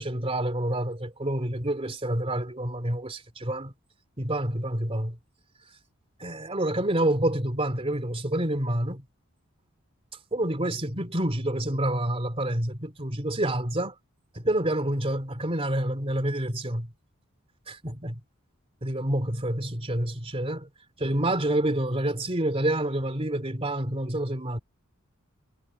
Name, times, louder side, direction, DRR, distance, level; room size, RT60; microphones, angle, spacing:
voice 1, 0.0-3.7 4.2-5.2 6.2-9.0 10.3-13.9 14.3-16.9 17.7-18.2 18.8-20.7 21.0-24.6, right 1 dB, 30° right, 3.2 m, -28 dB
head